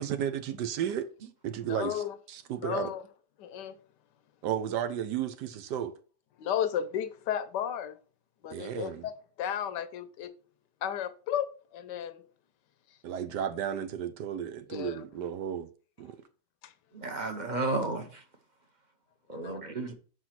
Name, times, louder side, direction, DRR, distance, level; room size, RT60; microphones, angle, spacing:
voice 1, 0.0-2.9 4.4-5.9 8.5-9.1 13.0-15.7 16.0-16.2, right 9 dB, 85° right, 1.4 m, -33 dB
voice 2, 1.6-2.2 2.6-3.0 3.4-3.7 6.4-7.9 8.4-9.1 9.4-10.3 10.8-11.5 11.7-12.1 14.7-15.0 19.4-19.6, left 9 dB, 90° left, 1.4 m, -33 dB
voice 3, 16.9-18.2 19.3-19.9, right 2 dB, 35° right, 0.8 m, -32 dB
5.7 x 5.0 x 5.9 m
omnidirectional pair, 1.8 m